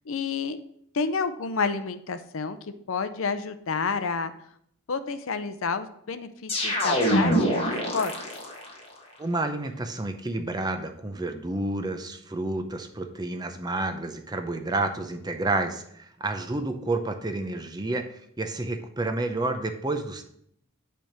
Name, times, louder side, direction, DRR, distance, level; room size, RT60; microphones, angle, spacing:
voice 1, 0.1-0.6 0.9-2.6 2.9-4.3 4.9-8.1, left 5 dB, 65° left, 11 dB, 0.6 m, -29 dB
sound 1, 6.5-8.7, equal, 25° left, 1.4 m, -25 dB
voice 2, 9.2-20.2, right 2 dB, 20° right, 6 dB, 0.6 m, -30 dB
9.0 x 3.5 x 6.0 m, 0.69 s
head